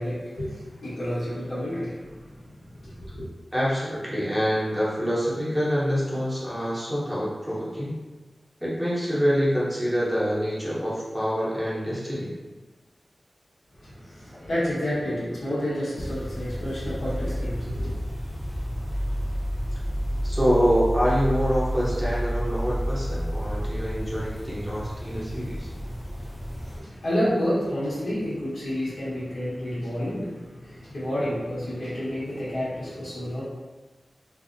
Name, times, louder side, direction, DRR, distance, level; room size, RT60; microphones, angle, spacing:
voice 1, 0.0-2.2 2.8-3.3 13.8-17.9 26.6-33.4, equal, 85° left, -10 dB, 1.1 m, -30 dB
voice 2, 3.5-7.9 8.6-12.3 20.2-25.7, equal, 5° right, -8 dB, 0.7 m, -26 dB
sound 1, 15.9-26.8, equal, 35° left, 0.6 m, -30 dB
2.5 x 2.0 x 2.5 m, 1.2 s
wide cardioid pair, 90°, 0 cm